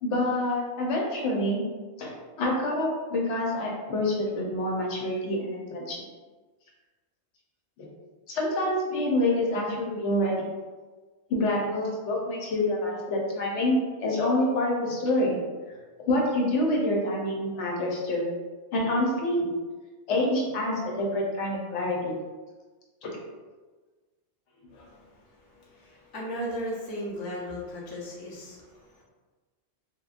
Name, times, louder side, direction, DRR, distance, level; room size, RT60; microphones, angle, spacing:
voice 1, 0.0-1.6 2.0-6.0 7.8-7.9 8.3-10.4 11.3-15.4 16.1-18.3 18.7-19.5 20.1-22.1 23.0-23.1 24.7-24.8, left 1 dB, 85° left, -2 dB, 1.0 m, -27 dB
voice 2, 24.7-29.0, equal, 35° left, -4 dB, 0.4 m, -37 dB
2.9 x 2.1 x 2.4 m, 1.3 s
omnidirectional pair, 1.2 m